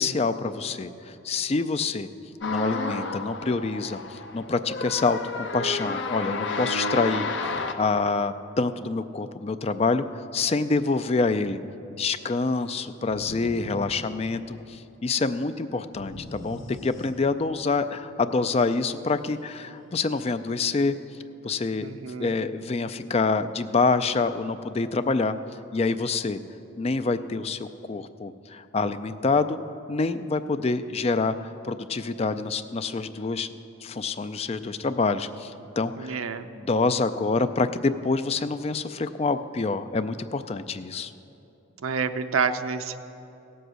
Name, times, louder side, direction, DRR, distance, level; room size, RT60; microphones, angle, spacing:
voice 1, 0.0-2.1 2.5-11.6 11.9-20.9 21.4-25.4 25.7-26.4 26.8-29.6 29.9-33.5 33.8-36.2 36.5-41.1, left 3 dB, 30° left, 11 dB, 0.4 m, -26 dB
sound 1, 2.4-7.7, left 3 dB, 55° left, 0.7 m, -31 dB
sound 2, 13.1-14.8 15.9-17.6, equal, 75° left, 1.5 m, -42 dB
voice 2, 21.8-22.3 36.0-36.5 41.8-43.0, right 5 dB, 85° right, 9 dB, 0.6 m, -28 dB
16.5 x 7.9 x 6.3 m, 2.9 s
head